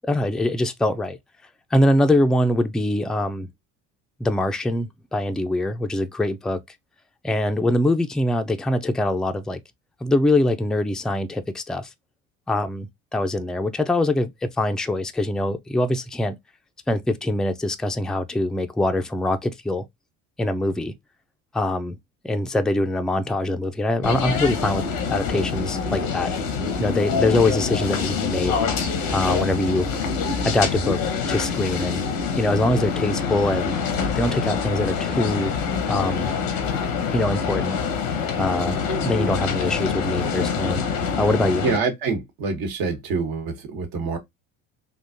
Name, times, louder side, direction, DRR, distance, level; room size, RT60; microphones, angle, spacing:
voice 1, 0.0-1.2 1.7-3.5 4.2-6.6 7.2-9.6 10.0-11.9 12.5-16.4 16.9-19.8 20.4-20.9 21.5-22.0 22.2-26.3 26.8-28.5 29.1-29.9 30.4-31.0 31.3-32.1 32.4-33.8 34.1-35.6 35.9-36.3 37.1-37.8 38.4-40.8 41.2-41.6, left 1 dB, ahead, 0.4 m, -23 dB
sound 1, 24.0-41.8, left 5 dB, 90° left, 1.0 m, -25 dB
voice 2, 41.6-44.2, right 4 dB, 65° right, 1.3 m, -26 dB
3.7 x 2.5 x 2.6 m
hypercardioid pair, 70°, 38 cm